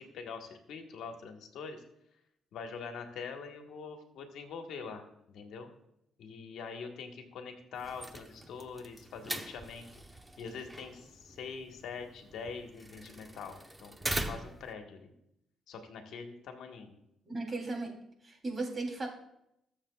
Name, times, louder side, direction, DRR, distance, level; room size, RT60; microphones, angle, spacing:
voice 1, 0.0-1.8 2.5-5.7 6.2-9.9 10.4-15.1 15.7-16.9, left 5 dB, 80° left, 4 dB, 1.5 m, -44 dB
sound 1, 7.8-14.7, right 1 dB, 10° right, 1.0 m, -42 dB
voice 2, 17.2-17.9 18.2-19.1, right 2 dB, 35° right, 1 dB, 3.3 m, -36 dB
21.5 x 7.3 x 2.4 m, 0.81 s
supercardioid pair, 70°, 0 cm